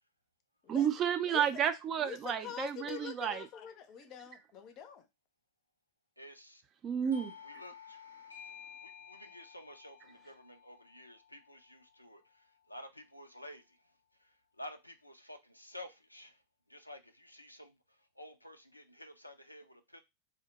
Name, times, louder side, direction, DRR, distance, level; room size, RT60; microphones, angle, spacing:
voice 1, 0.7-3.5 6.8-7.3, right 8 dB, 30° right, 0.4 m, -31 dB
voice 2, 2.0-5.0, left 9 dB, 35° left, 0.6 m, -45 dB
voice 3, 6.2-6.6 7.4-8.0 8.5-8.6 8.8-12.2 12.7-13.6 14.6-16.3 16.7-17.7 18.2-20.0, left 1 dB, 90° left, 0.4 m, -51 dB
Doorbell, 7.1-12.4, left 7 dB, 85° right, 0.6 m, -53 dB
2.6 x 2.1 x 3.9 m
figure-of-eight pair, 90°, 0 cm